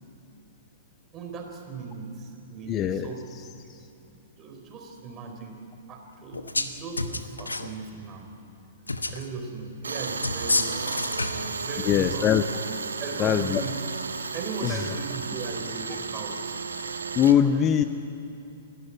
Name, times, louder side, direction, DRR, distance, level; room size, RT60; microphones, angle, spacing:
voice 1, 1.1-3.2 3.7-8.3 9.1-12.3 13.0-13.7 14.3-16.6 17.2-17.7, right 4 dB, 25° right, 3 dB, 4.0 m, -38 dB
voice 2, 2.7-3.1 3.7-3.9 11.8-12.4 13.2-13.6 14.6-14.8 17.1-17.8, left 9 dB, 25° left, 11 dB, 0.7 m, -22 dB
sound 1, 6.3-6.7 7.0-7.7 8.9-9.3 10.2-11.5, left 3 dB, 80° left, 1.1 m, -28 dB
Tools, 9.8-17.3, right 4 dB, 75° right, 1.4 m, -33 dB
29.0 x 13.0 x 9.7 m, 2.8 s
figure-of-eight pair, 110°, 0 cm